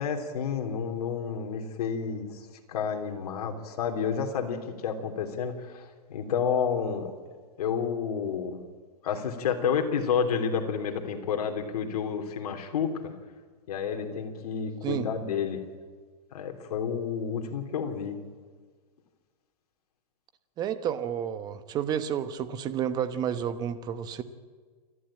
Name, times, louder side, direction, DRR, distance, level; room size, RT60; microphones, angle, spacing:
voice 1, 0.0-7.1 7.6-8.6 9.0-13.1 13.7-15.6 16.3-18.2, left 6 dB, 65° left, 4 dB, 3.4 m, -30 dB
voice 2, 20.6-24.2, right 9 dB, 20° right, 12 dB, 1.0 m, -30 dB
28.5 x 12.5 x 8.9 m, 1.5 s
hypercardioid pair, 160°, 21 cm